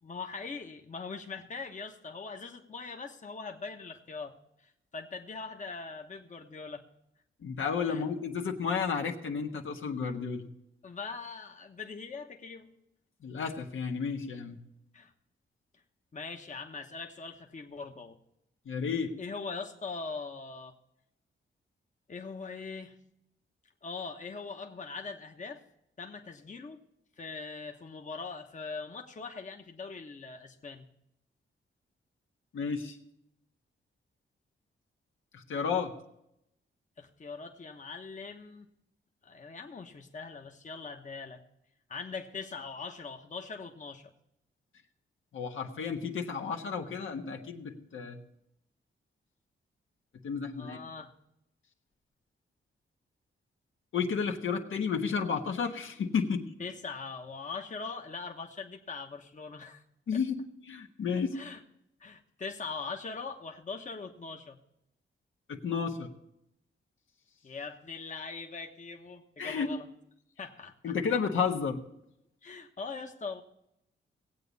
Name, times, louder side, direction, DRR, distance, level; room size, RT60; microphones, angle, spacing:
voice 1, 0.0-6.8 7.9-8.0 10.8-12.7 14.9-15.1 16.1-18.2 19.2-20.7 22.1-23.0 23.8-25.6 26.0-26.8 27.2-30.9 37.0-38.7 39.2-41.4 41.9-44.1 50.6-51.1 56.6-59.8 61.3-61.6 62.0-64.6 67.4-69.9 70.4-70.9 72.4-73.4, left 4 dB, 35° left, 3 dB, 1.1 m, -41 dB
voice 2, 7.4-10.5 13.2-14.6 18.7-19.1 32.5-32.9 35.3-35.9 45.3-48.2 50.2-50.8 53.9-56.5 60.1-60.4 60.7-61.3 65.5-66.1 69.4-69.7 70.8-71.8, left 6 dB, 80° left, 2 dB, 1.3 m, -32 dB
18.0 x 8.3 x 4.1 m, 0.81 s
wide cardioid pair, 100°, 20 cm